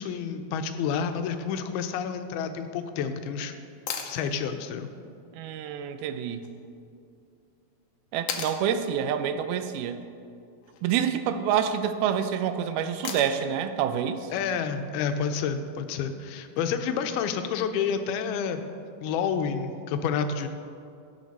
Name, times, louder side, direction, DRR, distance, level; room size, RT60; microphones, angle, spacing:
voice 1, 0.0-3.5 4.1-4.9 14.3-18.6 19.0-20.5, left 6 dB, 90° left, 8 dB, 2.6 m, -29 dB
sound 1, 3.9-4.2 6.4-6.5 8.3-8.6 10.6-11.0 13.0-13.5 15.6-15.7, left 7 dB, 70° left, 2.0 m, -34 dB
voice 2, 5.3-6.5 8.1-10.0 10.8-14.3, right 8 dB, 85° right, 10 dB, 2.5 m, -27 dB
17.0 x 6.8 x 4.1 m, 2.5 s
omnidirectional pair, 4.3 m